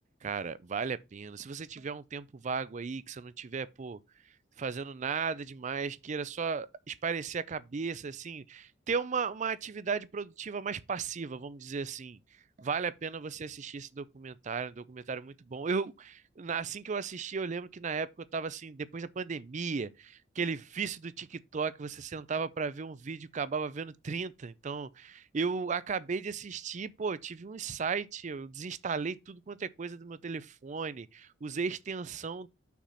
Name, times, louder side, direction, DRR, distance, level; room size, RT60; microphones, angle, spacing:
voice 1, 0.2-4.0 4.6-12.2 12.6-32.5, right 5 dB, 40° right, 0.4 m, -35 dB
5.9 x 4.2 x 5.6 m
head